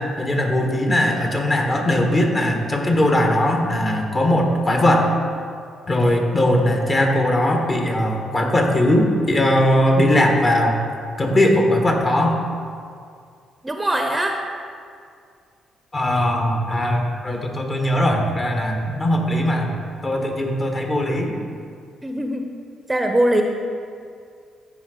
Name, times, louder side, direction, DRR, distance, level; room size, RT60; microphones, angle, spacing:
voice 1, 0.0-5.1 5.9-10.8 11.2-12.4 15.9-19.7 20.0-21.4, left 1 dB, 35° left, 2 dB, 1.6 m, -19 dB
voice 2, 13.6-14.4 22.0-22.5 22.9-23.4, right 1 dB, 20° right, 4 dB, 0.8 m, -21 dB
14.0 x 4.7 x 3.9 m, 2.2 s
hypercardioid pair, 45°, 0 cm